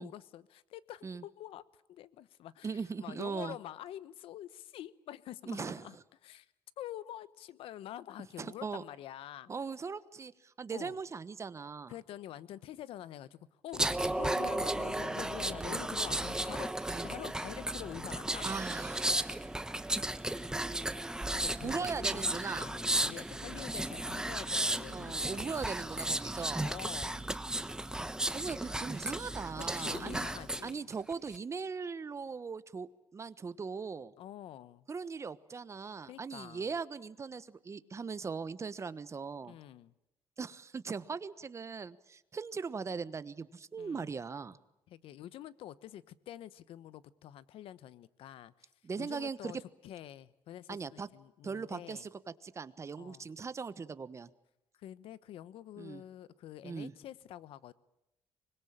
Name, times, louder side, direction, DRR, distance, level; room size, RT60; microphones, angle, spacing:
voice 1, 0.0-1.6 1.9-6.0 6.2-6.5 6.8-9.5 10.7-10.9 11.9-13.8 14.2-18.7 21.3-25.5 26.6-27.3 29.6-30.8 34.2-34.9 36.0-36.8 39.4-39.9 43.8-44.1 44.9-48.7 49.0-52.0 53.0-53.3 54.8-57.7, left 12 dB, 85° left, 17 dB, 1.0 m, -47 dB
voice 2, 2.6-3.6 5.5-5.9 8.4-8.8 9.5-11.9 14.0-14.1 15.6-15.8 16.9-17.1 18.4-19.4 21.6-22.7 24.9-26.6 28.3-30.2 30.6-34.1 34.9-39.6 40.4-44.6 48.8-49.5 50.7-51.1 51.4-52.1 52.4-54.3 55.8-56.0 56.6-56.9, right 5 dB, 30° right, 15 dB, 1.2 m, -39 dB
sound 1, 13.7-30.7 31.1-31.4, right 1 dB, 5° right, 1.1 m, -34 dB
25.0 x 21.0 x 8.8 m, 0.91 s
cardioid pair, 110°, 9 cm